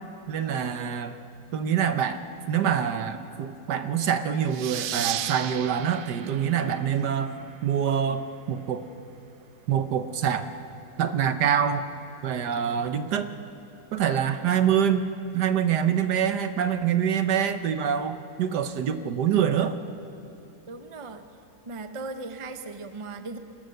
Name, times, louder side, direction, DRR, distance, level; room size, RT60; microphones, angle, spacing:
voice 1, 0.3-1.2 1.5-2.2 2.5-7.3 7.6-8.9 9.7-10.5 11.0-11.8 12.2-13.3 13.9-15.0 15.3-19.8, right 8 dB, 65° right, 9 dB, 1.4 m, -25 dB
sound 1, 4.5-7.7, right 12 dB, 85° right, 1.4 m, -35 dB
voice 2, 20.7-21.3 21.6-23.4, right 3 dB, 30° right, 8 dB, 0.6 m, -37 dB
26.5 x 17.0 x 6.7 m, 2.9 s
omnidirectional pair, 2.0 m